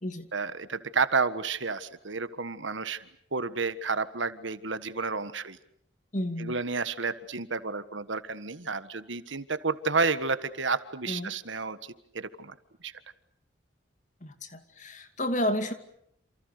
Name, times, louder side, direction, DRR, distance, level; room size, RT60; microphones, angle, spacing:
voice 1, 0.3-3.0 3.3-5.6 6.4-12.5 12.8-12.9, right 4 dB, 80° right, 13 dB, 1.5 m, -31 dB
voice 2, 6.1-6.6 11.1-11.3 14.2-15.7, left 1 dB, 40° left, 8 dB, 2.5 m, -31 dB
28.5 x 28.0 x 6.7 m, 0.70 s
head